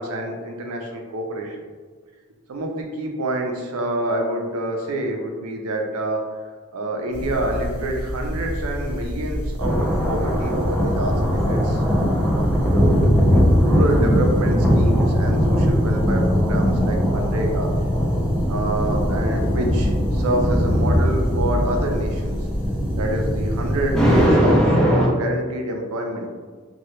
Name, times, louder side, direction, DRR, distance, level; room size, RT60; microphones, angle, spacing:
voice 1, 0.0-1.6 2.5-6.3 6.7-13.0 13.6-17.7 18.5-22.4 23.0-26.3, right 1 dB, 80° right, 2 dB, 0.5 m, -27 dB
sound 1, 7.1-24.3, equal, 25° right, 0.7 m, -28 dB
sound 2, 9.6-25.1, equal, 5° left, 0.3 m, -20 dB
2.8 x 2.2 x 3.1 m, 1.5 s
head